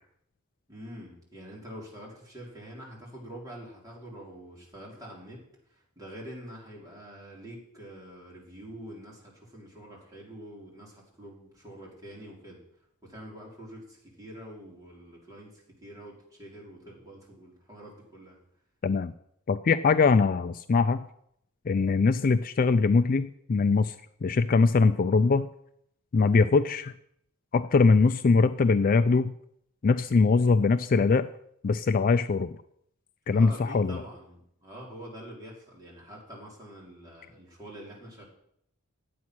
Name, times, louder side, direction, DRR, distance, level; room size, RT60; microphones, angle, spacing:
voice 1, 0.7-5.4 5.7-12.6 13.0-18.4 33.3-38.2, right 1 dB, 15° right, -4 dB, 3.8 m, -45 dB
voice 2, 19.5-21.0 21.7-23.9 24.2-25.5 26.1-26.9 27.5-29.3 29.8-31.3 31.6-32.6 33.3-34.0, left 4 dB, 40° left, 11 dB, 0.4 m, -22 dB
11.0 x 8.4 x 6.2 m, 0.71 s
head